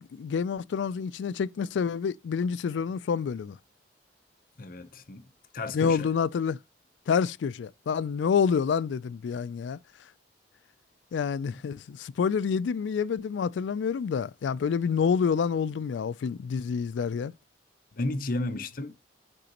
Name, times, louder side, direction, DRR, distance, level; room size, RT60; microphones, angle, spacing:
voice 1, 0.0-3.6 5.7-6.6 7.1-9.8 11.1-17.3, left 6 dB, 85° left, 0.3 m, -28 dB
voice 2, 4.6-6.1 11.5-11.6 17.9-18.9, left 2 dB, 50° left, 0.8 m, -33 dB
10.0 x 3.9 x 2.9 m
head